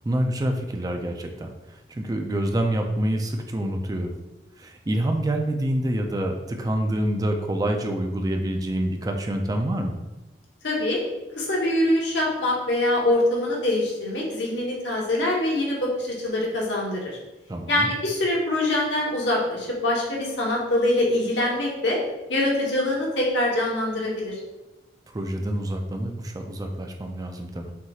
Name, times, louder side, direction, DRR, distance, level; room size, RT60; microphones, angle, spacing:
voice 1, 0.0-4.2 4.6-10.0 17.5-17.9 25.1-27.7, right 1 dB, 20° right, 4 dB, 0.4 m, -27 dB
voice 2, 10.6-11.0 11.4-17.2 17.7-22.0 22.3-24.4, left 1 dB, 80° left, -3 dB, 1.1 m, -24 dB
5.9 x 2.9 x 2.4 m, 1.1 s
head